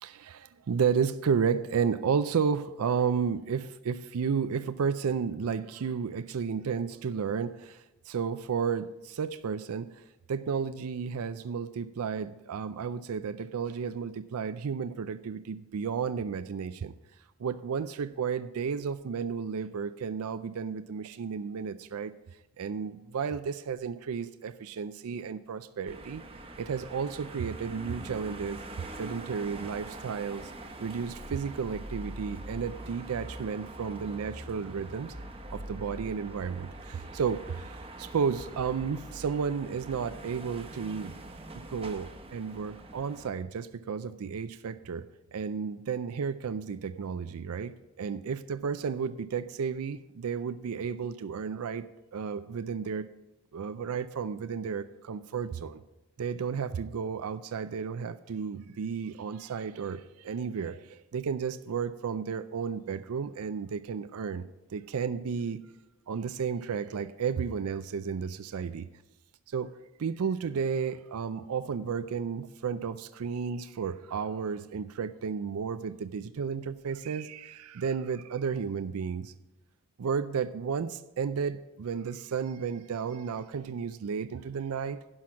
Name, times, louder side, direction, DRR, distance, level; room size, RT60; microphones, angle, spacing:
voice 1, 0.0-10.0 10.3-16.9 17.4-22.1 22.6-26.2 26.6-28.6 29.0-30.5 30.8-35.1 35.5-41.1 41.7-45.0 45.3-51.8 52.1-53.1 53.5-55.8 56.2-64.4 64.7-65.6 66.1-68.9 69.5-69.7 70.0-79.3 80.0-85.0, right 6 dB, 75° right, 13 dB, 0.4 m, -32 dB
sound 1, 25.9-43.3, right 1 dB, 25° right, 0.9 m, -44 dB
11.0 x 5.9 x 5.8 m, 0.97 s
head